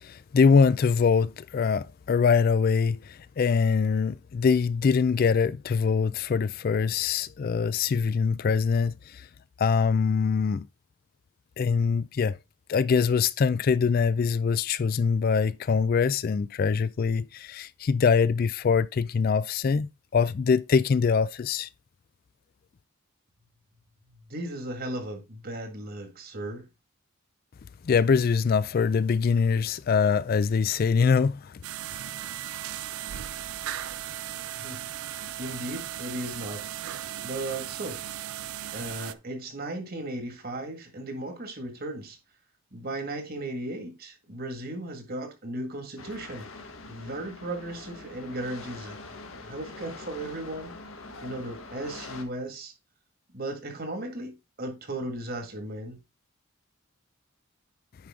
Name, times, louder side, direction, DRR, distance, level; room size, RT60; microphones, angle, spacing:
voice 1, 0.0-9.3 9.6-10.7 11.6-12.4 12.7-19.9 20.1-21.7 27.8-31.5, left 5 dB, 45° left, 0.3 m, -23 dB
voice 2, 24.3-26.6 34.5-34.8 35.4-36.9 37.2-38.3 38.7-42.2 42.7-46.5 46.8-49.0 49.4-50.7 51.2-52.7 53.3-56.0, right 1 dB, 45° right, 1.9 m, -36 dB
sound 1, 31.6-39.1, right 11 dB, 85° right, 0.5 m, -37 dB
sound 2, 46.0-52.2, left 3 dB, 70° left, 1.4 m, -44 dB
9.6 x 4.9 x 3.6 m
head